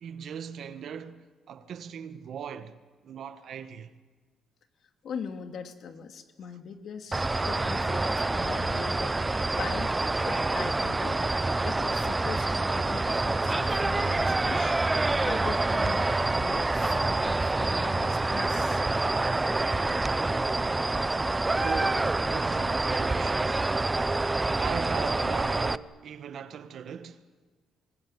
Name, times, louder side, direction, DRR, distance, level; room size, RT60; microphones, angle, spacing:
voice 1, 0.0-2.8 3.0-3.9 21.6-23.7 24.6-27.2, right 7 dB, 65° right, 1.5 m, -39 dB
voice 2, 5.0-10.0 10.3-11.2 11.6-14.8 15.2-18.8, left 6 dB, 65° left, 2.5 m, -41 dB
sound 1, 7.1-25.8, right 2 dB, 20° right, 0.7 m, -27 dB
25.0 x 20.5 x 9.9 m
cardioid pair, 90°, 0 cm